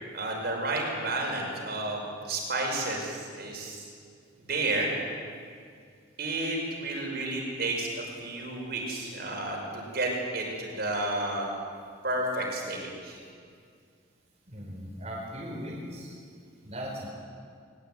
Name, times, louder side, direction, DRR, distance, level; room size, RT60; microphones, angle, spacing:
voice 1, 0.1-3.9 4.5-4.9 6.2-11.5 12.0-13.2, right 2 dB, 55° right, 0 dB, 5.8 m, -31 dB
voice 2, 14.5-16.2 16.6-17.1, equal, 35° right, -4 dB, 4.5 m, -38 dB
21.0 x 20.0 x 9.4 m, 2.2 s
head